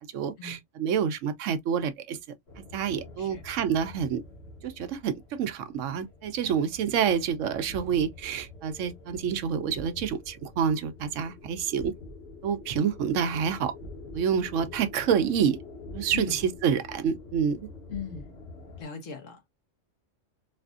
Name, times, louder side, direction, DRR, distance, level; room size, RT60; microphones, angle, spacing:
voice 1, 0.1-2.2 2.7-4.2 4.6-11.9 12.4-13.7 14.1-15.6 15.9-17.6, right 7 dB, 85° right, 1.0 m, -28 dB
sound 1, 2.5-18.8, left 2 dB, 60° left, 1.3 m, -46 dB
voice 2, 16.1-16.4 17.9-18.3 18.8-19.5, left 6 dB, 90° left, 1.4 m, -39 dB
4.0 x 2.5 x 2.3 m
omnidirectional pair, 1.3 m